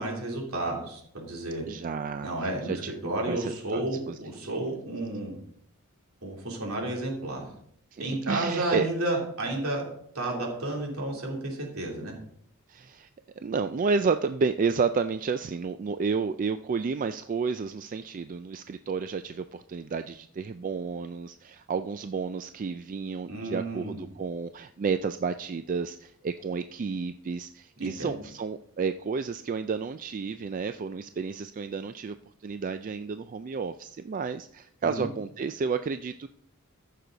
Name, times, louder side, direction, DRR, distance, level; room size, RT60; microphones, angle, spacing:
voice 1, 0.0-1.6 2.2-5.4 6.2-7.5 8.0-9.8 10.1-12.1 23.3-24.0 27.8-28.2 34.8-35.1, right 2 dB, 70° right, -1 dB, 3.2 m, -32 dB
voice 2, 1.7-2.3 2.6-4.5 7.9-8.9 12.7-13.1 13.4-32.1 32.4-36.3, right 5 dB, 35° right, 10 dB, 0.3 m, -31 dB
14.5 x 6.7 x 3.9 m, 0.69 s
head